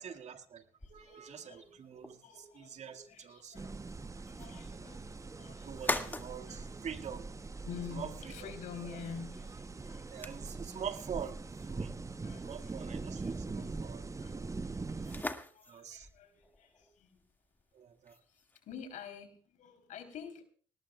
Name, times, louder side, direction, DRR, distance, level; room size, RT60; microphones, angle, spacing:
voice 1, 0.0-0.6 0.9-3.6 5.6-7.3 7.9-8.1 8.7-8.9 10.1-11.4 11.7-12.0 12.4-14.5 15.7-16.1 17.7-18.2, right 8 dB, 55° right, 6 dB, 2.0 m, -45 dB
voice 2, 0.8-4.0 4.2-7.1 7.6-10.8 11.9-13.8 14.1-17.2 18.2-20.4, left 6 dB, 70° left, 6 dB, 3.6 m, -50 dB
sound 1, 0.8-19.2, left 2 dB, 15° left, 2.0 m, -46 dB
sound 2, 3.5-15.2, right 3 dB, 25° right, 0.9 m, -42 dB
21.5 x 19.0 x 2.3 m, 0.43 s
hypercardioid pair, 50°, 13 cm